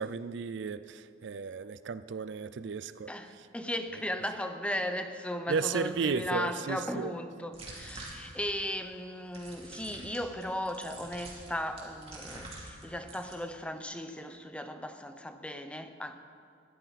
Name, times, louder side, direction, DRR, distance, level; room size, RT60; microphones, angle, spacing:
voice 1, 0.0-3.1 5.5-7.1, right 5 dB, 65° right, 14 dB, 0.4 m, -34 dB
voice 2, 3.1-16.2, left 1 dB, 5° left, 8 dB, 0.7 m, -36 dB
sound 1, 7.5-8.7 9.3-13.3, right 2 dB, 30° right, 2.8 m, -47 dB
20.0 x 13.5 x 4.1 m, 2.3 s
head